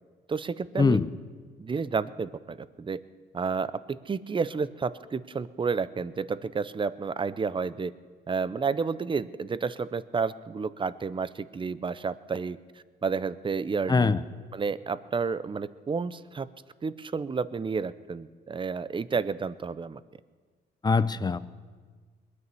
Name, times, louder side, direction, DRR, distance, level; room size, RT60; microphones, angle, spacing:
voice 1, 0.3-1.0 1.6-3.0 3.3-7.9 8.3-12.6 13.0-14.1 14.5-16.5 16.8-20.0, right 5 dB, 25° right, 16 dB, 0.6 m, -31 dB
voice 2, 13.9-14.2 20.8-21.4, left 4 dB, 20° left, 13 dB, 0.6 m, -22 dB
21.0 x 9.7 x 6.9 m, 1.5 s
cardioid pair, 90°, 20 cm